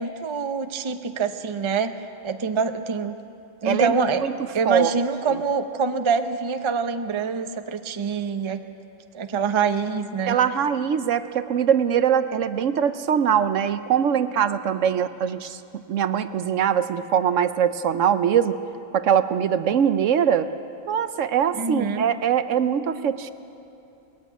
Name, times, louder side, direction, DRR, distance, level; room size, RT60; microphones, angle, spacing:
voice 1, 0.0-2.0 2.2-3.2 3.6-4.2 4.5-8.6 9.1-10.4 21.5-22.1, right 5 dB, 30° right, 8 dB, 0.6 m, -25 dB
voice 2, 3.6-3.9 4.2-4.3 4.7-4.9 10.3-15.6 15.9-18.6 18.9-20.5 20.9-23.3, right 8 dB, 70° right, 11 dB, 1.0 m, -22 dB
21.0 x 15.0 x 9.3 m, 2.9 s
omnidirectional pair, 1.4 m